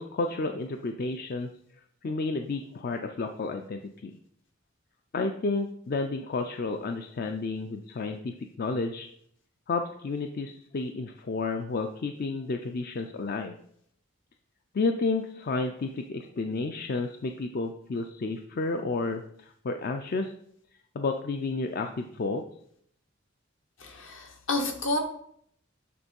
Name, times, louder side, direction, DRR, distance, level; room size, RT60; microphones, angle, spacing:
voice 1, 0.0-1.5 2.0-4.1 5.1-9.1 9.7-13.6 14.7-20.3 20.9-22.4, left 3 dB, 45° left, 6 dB, 0.4 m, -31 dB
voice 2, 23.8-25.0, left 2 dB, 65° left, 3 dB, 1.3 m, -30 dB
8.5 x 3.7 x 5.3 m, 0.68 s
head